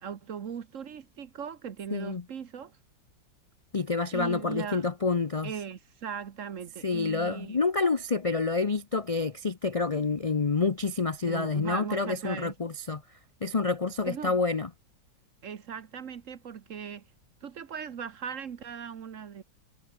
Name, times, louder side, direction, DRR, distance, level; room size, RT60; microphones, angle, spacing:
voice 1, 0.0-2.8 4.1-4.8 5.4-7.6 11.3-12.5 14.1-14.4 15.4-17.0 17.4-19.4, right 7 dB, 50° right, 1.3 m, -39 dB
voice 2, 1.9-2.2 3.7-5.5 6.8-13.0 13.4-14.7, left 4 dB, 50° left, 0.4 m, -28 dB
omnidirectional pair, 1.9 m